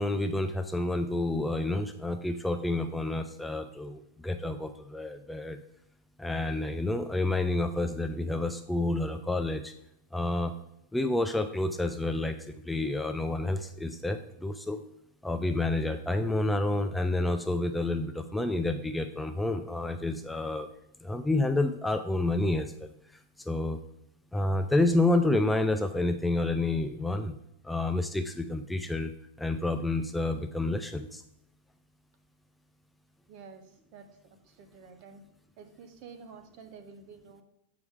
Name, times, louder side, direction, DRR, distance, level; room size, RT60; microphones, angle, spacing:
voice 1, 0.0-5.6 6.2-9.7 10.1-10.5 10.9-14.8 15.2-20.7 21.0-22.9 23.4-23.8 24.3-27.3 27.6-29.1 29.4-31.2, left 2 dB, 5° left, 7 dB, 0.4 m, -29 dB
voice 2, 33.3-35.2 35.6-37.4, right 5 dB, 50° right, 8 dB, 1.0 m, -50 dB
8.1 x 4.8 x 3.6 m, 0.81 s
supercardioid pair, 135°, 0 cm